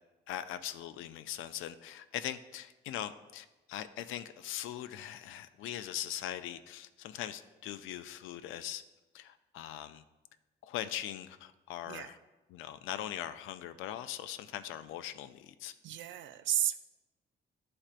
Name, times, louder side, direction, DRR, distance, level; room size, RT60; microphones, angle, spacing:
voice 1, 0.3-8.8 9.1-10.0 10.6-12.2 12.5-15.7, left 11 dB, 85° left, 11 dB, 0.4 m, -41 dB
voice 2, 15.8-16.9, right 11 dB, 75° right, 11 dB, 0.5 m, -33 dB
10.0 x 4.3 x 2.4 m, 1.1 s
cardioid pair, 90°, 20 cm